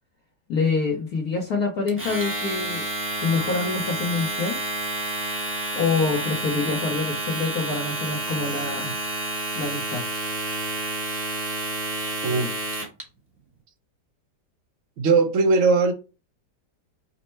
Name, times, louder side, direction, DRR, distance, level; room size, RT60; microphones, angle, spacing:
voice 1, 0.5-2.8 3.2-4.6 5.7-8.9 9.5-10.1, left 4 dB, 65° left, 1.2 m, -26 dB
Domestic sounds home sounds, 1.9-13.0, right 2 dB, 10° right, 0.8 m, -29 dB
voice 2, 12.2-12.5 15.0-15.9, right 4 dB, 55° right, 0.9 m, -19 dB
5.3 x 2.1 x 4.3 m
omnidirectional pair, 1.9 m